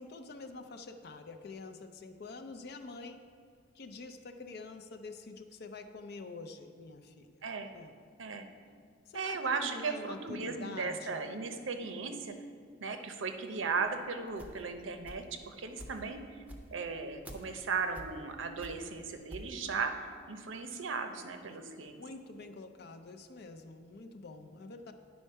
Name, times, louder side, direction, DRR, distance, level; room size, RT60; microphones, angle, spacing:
voice 1, 0.0-3.2 3.7-7.3 7.7-7.9 9.1-11.3 21.5-21.6 22.0-24.9, left 3 dB, 55° left, 7 dB, 0.5 m, -47 dB
voice 2, 7.4-7.7 8.2-8.5 9.1-12.3 12.8-16.2 16.7-19.9 20.3-22.0, right 4 dB, 85° right, 7 dB, 0.7 m, -36 dB
sound 1, 13.8-15.4 15.8-19.6, equal, 10° right, 0.6 m, -49 dB
9.5 x 4.5 x 5.5 m, 2.1 s
head